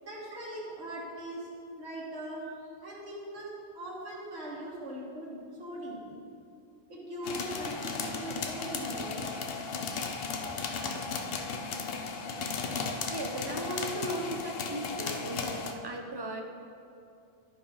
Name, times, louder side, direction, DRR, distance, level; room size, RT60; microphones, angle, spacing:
voice 1, 0.0-1.5 1.8-2.4 2.8-6.2 6.9-9.2 10.3-10.4, right 1 dB, 85° right, -6 dB, 2.0 m, -40 dB
sound 1, 7.2-15.7, left 4 dB, 65° left, 0.9 m, -35 dB
voice 2, 12.9-16.4, right 1 dB, 25° right, 2 dB, 0.8 m, -37 dB
11.0 x 5.3 x 5.0 m, 2.5 s
omnidirectional pair, 1.1 m